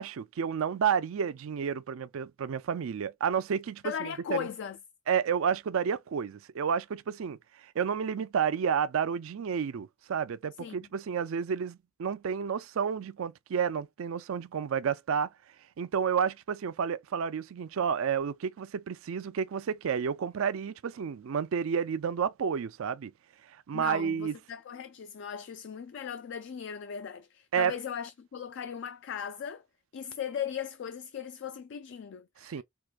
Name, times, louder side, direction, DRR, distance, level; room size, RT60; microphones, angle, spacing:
voice 1, 0.0-4.5 5.1-7.4 7.8-15.3 15.8-23.1 23.7-24.3 27.5-27.7 32.4-32.6, right 7 dB, 70° right, 0.4 m, -30 dB
voice 2, 3.8-4.8 10.6-10.8 23.7-29.6 29.9-32.6, left 8 dB, 55° left, 0.3 m, -38 dB
4.6 x 2.5 x 2.3 m
head